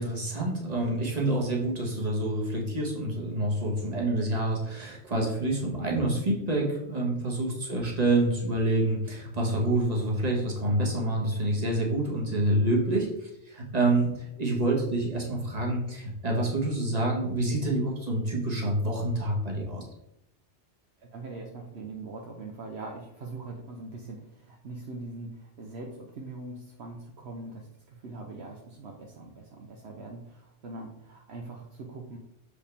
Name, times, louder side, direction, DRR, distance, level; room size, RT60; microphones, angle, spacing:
voice 1, 0.0-19.8, right 1 dB, 35° right, -1 dB, 1.5 m, -27 dB
voice 2, 21.0-32.2, right 3 dB, 65° right, 1 dB, 1.0 m, -42 dB
6.6 x 5.0 x 3.5 m, 0.83 s
omnidirectional pair, 1.2 m